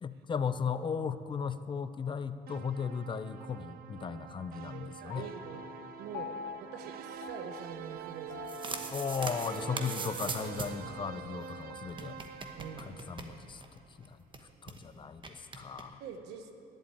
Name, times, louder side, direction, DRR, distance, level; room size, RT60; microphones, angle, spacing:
voice 1, 0.0-5.3 8.9-12.2 12.8-13.6 14.0-14.2 14.6-16.0, left 6 dB, 30° left, 12 dB, 0.6 m, -36 dB
sound 1, 2.5-13.7, right 8 dB, 60° right, 0.7 m, -46 dB
voice 2, 4.7-8.9 12.6-13.1 16.0-16.5, right 6 dB, 80° right, 7 dB, 1.2 m, -45 dB
Piano, 5.1-11.8, left 8 dB, 80° left, 0.7 m, -47 dB
sound 2, 8.2-10.9 11.2-11.3 11.4-11.5 11.9-13.8 14.0-14.1 14.3-14.8 15.2-15.8, right 4 dB, 30° right, 1.1 m, -41 dB
11.5 x 8.0 x 8.9 m, 2.9 s
cardioid pair, 110°, 17 cm